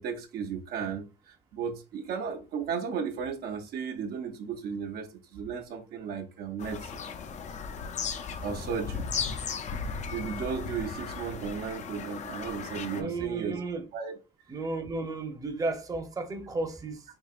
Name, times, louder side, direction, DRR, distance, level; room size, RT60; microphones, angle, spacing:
voice 1, 0.0-7.0 8.4-9.1 10.1-14.2, right 6 dB, 65° right, 0.7 m, -35 dB
Bird vocalization bird call bird song, 6.6-13.0, left 6 dB, 45° left, 0.5 m, -36 dB
voice 2, 12.9-13.8 14.5-17.0, right 3 dB, 20° right, 0.7 m, -33 dB
4.7 x 2.8 x 2.4 m
cardioid pair, 110°, 17 cm